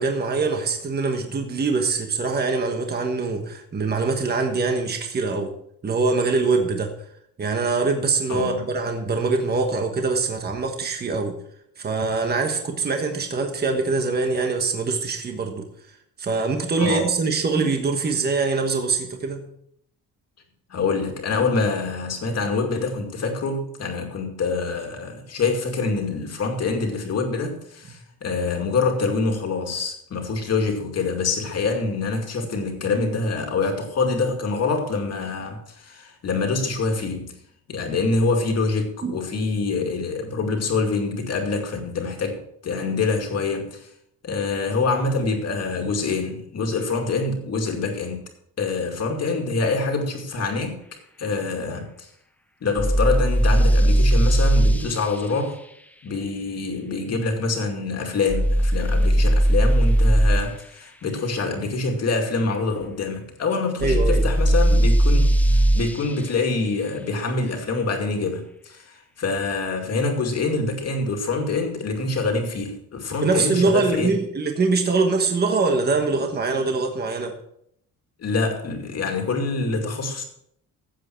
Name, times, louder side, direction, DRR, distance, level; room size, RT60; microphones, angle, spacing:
voice 1, 0.0-5.5 5.8-6.9 7.4-11.4 11.8-15.6 16.2-19.5 39.0-39.2 63.8-64.2 73.2-77.3, right 4 dB, 25° right, 3 dB, 1.3 m, -23 dB
voice 2, 8.3-8.7 16.8-17.1 20.7-37.4 37.7-43.9 44.2-48.2 48.6-50.8 51.2-51.9 52.6-55.6 56.0-74.1 78.2-80.2, left 3 dB, 45° left, 3 dB, 2.4 m, -25 dB
sound 1, 52.8-54.8 58.3-60.4 63.8-65.9, right 1 dB, 5° left, 0.5 m, -18 dB
15.5 x 7.7 x 4.6 m, 0.71 s
cardioid pair, 170°, 35 cm